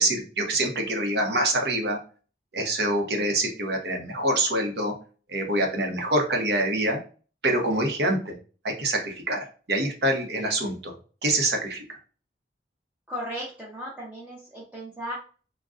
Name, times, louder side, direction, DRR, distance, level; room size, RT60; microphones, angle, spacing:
voice 1, 0.0-2.0 2.5-4.9 5.3-7.0 7.4-8.3 8.6-9.4 9.7-10.9 11.2-12.0, right 1 dB, 65° right, 3 dB, 0.8 m, -25 dB
voice 2, 13.1-15.1, equal, 10° right, -7 dB, 0.7 m, -36 dB
3.7 x 2.2 x 2.4 m, 0.38 s
head